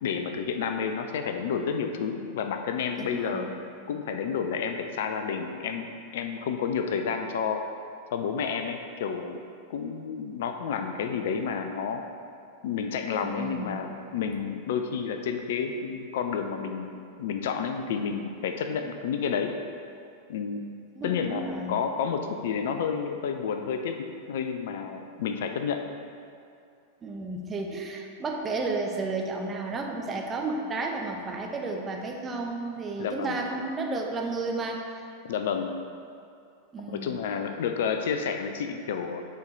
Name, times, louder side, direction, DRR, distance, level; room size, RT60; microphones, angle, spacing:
voice 1, 0.0-3.5 3.9-7.6 8.1-9.4 9.7-12.0 12.6-16.9 17.2-19.5 20.3-20.6 21.0-24.0 24.3-25.8 33.0-33.4 35.2-35.7 36.9-39.2, left 6 dB, 55° left, 6 dB, 0.5 m, -30 dB
voice 2, 3.0-3.5 13.2-13.8 21.0-21.9 27.0-35.1 36.7-37.2, right 3 dB, 20° right, 1 dB, 0.9 m, -32 dB
9.4 x 4.5 x 3.9 m, 2.4 s
figure-of-eight pair, 90°, 0 cm